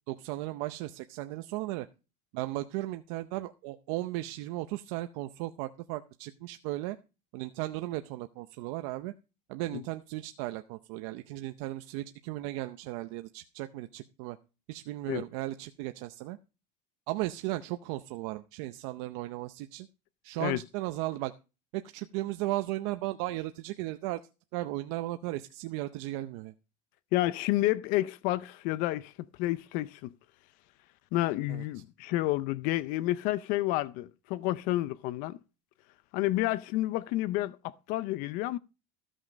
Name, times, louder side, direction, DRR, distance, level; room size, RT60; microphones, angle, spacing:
voice 1, 0.1-1.9 2.3-7.0 7.3-9.1 9.5-14.4 14.7-16.4 17.1-19.9 20.2-21.3 21.7-24.2 24.5-26.5 31.5-31.6, right 17 dB, 70° right, 0.7 m, -36 dB
voice 2, 27.1-29.1 29.4-30.1 31.1-35.4 36.1-38.6, left 16 dB, 55° left, 0.5 m, -30 dB
15.0 x 6.3 x 5.1 m
cardioid pair, 155°, 17 cm